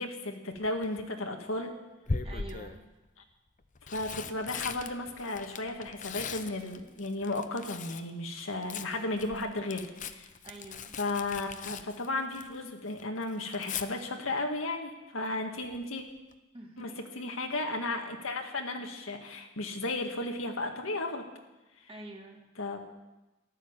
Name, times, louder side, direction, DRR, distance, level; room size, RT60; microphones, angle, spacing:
voice 1, 0.0-1.8 3.9-10.3 11.0-16.0 16.8-21.2 22.6-22.8, left 2 dB, 85° left, 3 dB, 1.9 m, -34 dB
Tearing, 0.6-1.0 2.1-2.8 3.6-8.1 8.4-12.7 13.0-13.9 15.7-16.0 16.3-16.4, left 5 dB, 40° left, 0.7 m, -40 dB
voice 2, 2.2-2.9 10.4-11.0 16.5-17.0 21.9-22.4, right 2 dB, 30° right, 1 dB, 2.2 m, -46 dB
14.0 x 12.0 x 7.3 m, 1.1 s
head